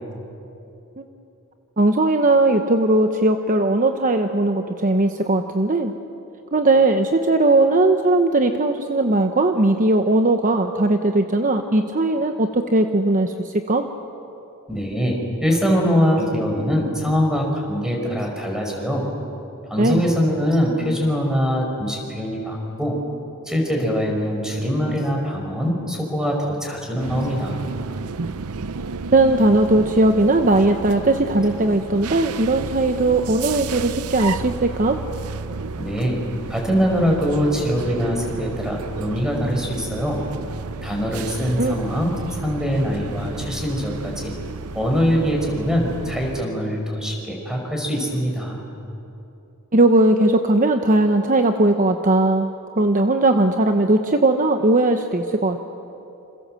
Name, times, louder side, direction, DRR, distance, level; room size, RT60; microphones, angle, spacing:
voice 1, 1.8-5.9 6.5-13.3 13.7-13.9 19.8-20.0 29.1-35.0 41.6-41.8 49.7-52.5 52.8-55.6, right 2 dB, 35° right, 6 dB, 1.0 m, -18 dB
voice 2, 14.7-19.0 19.7-23.0 23.5-27.7 35.8-36.2 36.5-40.2 40.8-42.1 42.4-44.3 44.7-48.6, equal, 5° right, 1 dB, 5.2 m, -23 dB
sound 1, 27.0-46.4, right 4 dB, 75° right, 0.7 m, -32 dB
28.0 x 27.5 x 7.7 m, 2.9 s
head